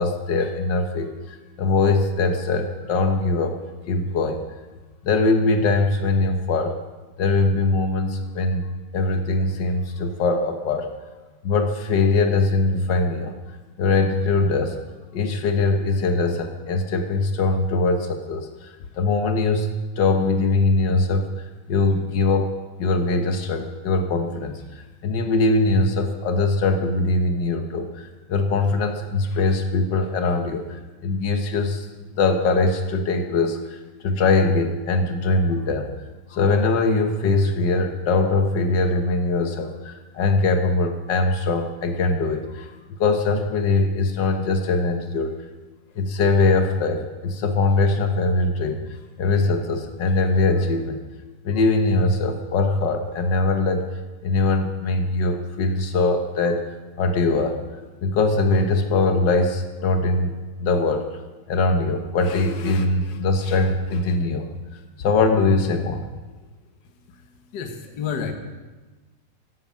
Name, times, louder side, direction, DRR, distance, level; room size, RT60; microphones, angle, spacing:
voice 1, 0.0-3.6 3.9-4.4 5.0-6.8 7.2-8.7 8.9-10.9 11.4-13.3 13.8-14.8 15.1-31.9 32.2-35.9 36.3-42.7 43.0-45.5 45.9-48.9 49.2-51.0 51.4-53.9 54.2-56.6 57.0-57.6 58.0-60.3 60.6-61.2 61.5-66.1, left 3 dB, 80° left, 5 dB, 1.0 m, -22 dB
voice 2, 66.8-68.3, left 7 dB, 50° left, 5 dB, 1.3 m, -32 dB
12.5 x 11.0 x 7.4 m, 1.2 s
omnidirectional pair, 3.4 m